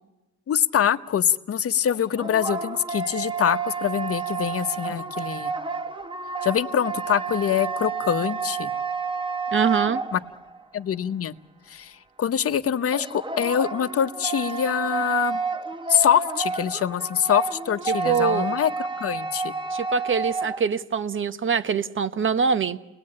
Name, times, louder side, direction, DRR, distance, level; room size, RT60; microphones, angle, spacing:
voice 1, 0.5-5.5 6.4-8.7 10.1-10.2 10.7-11.3 11.7-11.9 12.2-15.4 15.9-19.5, left 9 dB, 50° left, 10 dB, 1.1 m, -24 dB
sound 1, 1.9-10.6 12.9-20.7, right 5 dB, 15° right, 1.1 m, -30 dB
voice 2, 9.5-10.0 17.9-18.5 19.7-22.8, right 6 dB, 40° right, 13 dB, 1.2 m, -24 dB
29.5 x 20.0 x 8.8 m, 1.0 s
cardioid pair, 90°, 30 cm